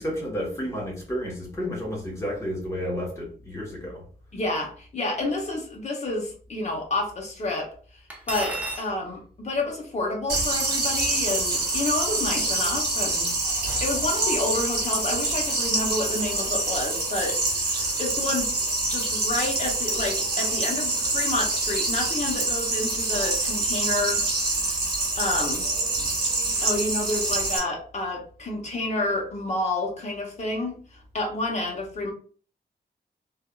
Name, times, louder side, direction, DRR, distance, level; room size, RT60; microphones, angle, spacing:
voice 1, 0.0-4.0, equal, 15° left, -3 dB, 1.0 m, -31 dB
voice 2, 4.3-7.7 8.3-13.4 13.8-18.5 18.9-24.3 25.2-25.7 26.6-32.1, left 2 dB, 40° left, 1 dB, 0.8 m, -29 dB
Cutlery silverware, 8.1-8.9, right 2 dB, 10° right, 0.5 m, -32 dB
sound 1, 10.3-27.6, right 2 dB, 60° right, 1.1 m, -26 dB
3.3 x 2.3 x 2.3 m, 0.43 s
wide cardioid pair, 165°, 18 cm